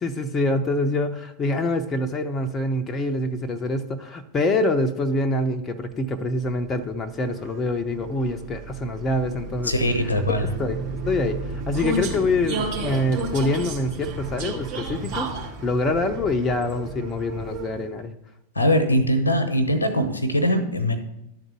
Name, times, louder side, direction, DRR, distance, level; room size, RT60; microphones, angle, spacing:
voice 1, 0.0-9.7 10.2-11.4 11.7-15.3 15.6-18.1, left 2 dB, 25° left, 7 dB, 0.7 m, -25 dB
Vehicle, 6.1-18.0, right 3 dB, 50° right, 2.1 m, -33 dB
voice 2, 9.6-10.5 18.5-21.0, equal, 80° left, 10 dB, 0.9 m, -21 dB
11.5 x 4.0 x 6.1 m, 0.86 s
figure-of-eight pair, 90°, 0 cm